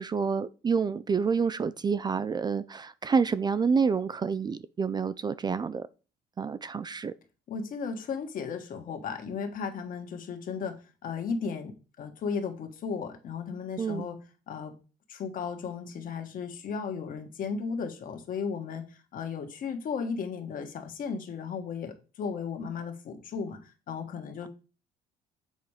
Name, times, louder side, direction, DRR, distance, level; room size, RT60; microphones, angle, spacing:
voice 1, 0.0-5.9 6.4-7.1 13.8-14.1, right 5 dB, 25° right, 0.4 m, -28 dB
voice 2, 7.5-10.8 11.0-14.2 14.5-14.7 15.1-18.8 19.1-24.5, left 5 dB, 55° left, 1.6 m, -35 dB
8.2 x 4.3 x 4.9 m
cardioid pair, 110°, 17 cm